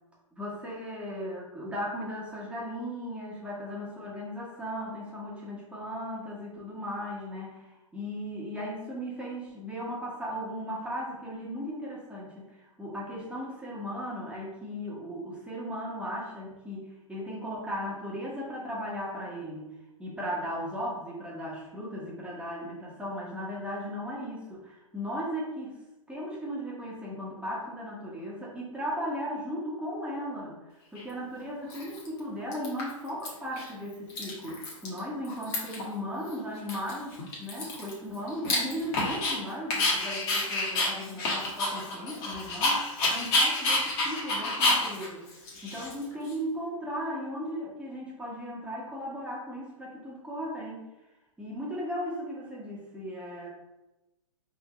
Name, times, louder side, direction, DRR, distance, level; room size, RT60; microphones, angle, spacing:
voice 1, 0.3-19.7 20.0-25.8 26.1-30.6 30.9-50.8 51.4-53.5, equal, 5° right, -6 dB, 1.1 m, -37 dB
Dog, 31.0-31.1 31.7-32.2 32.5-33.3 33.6-33.7 33.9-35.0 35.2-35.9 36.3-36.4 36.7-39.4 39.7-46.3, left 2 dB, 40° left, 1.5 m, -29 dB
4.5 x 3.7 x 3.1 m, 0.98 s
hypercardioid pair, 125°, 18 cm